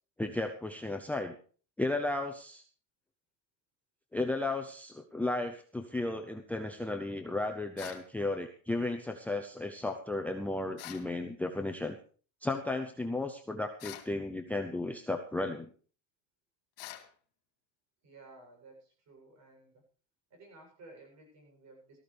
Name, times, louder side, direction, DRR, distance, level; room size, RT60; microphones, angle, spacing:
voice 1, 0.2-1.4 1.8-2.6 4.1-12.0 12.4-15.7, left 2 dB, 5° left, 6 dB, 0.7 m, -34 dB
sound 1, 7.8-8.1 10.8-11.1 13.8-14.1 16.8-17.1, left 14 dB, 75° left, 3.0 m, -45 dB
voice 2, 18.0-19.8 20.3-22.0, right 2 dB, 45° right, 1 dB, 8.0 m, -55 dB
18.0 x 14.0 x 3.4 m, 0.40 s
cardioid pair, 150°, 39 cm